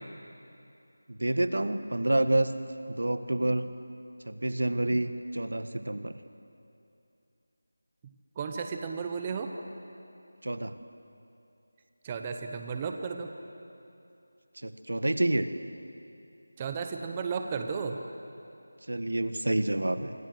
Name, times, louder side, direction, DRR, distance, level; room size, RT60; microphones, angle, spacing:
voice 1, 1.1-2.5 2.9-3.7 4.3-6.2 10.4-10.7 14.6-15.5 18.9-20.1, right 1 dB, 90° right, 10 dB, 1.5 m, -28 dB
voice 2, 8.0-9.5 12.0-13.3 16.6-18.0, right 5 dB, 10° right, 5 dB, 0.7 m, -34 dB
26.0 x 25.0 x 7.9 m, 2.7 s
figure-of-eight pair, 180°, 0 cm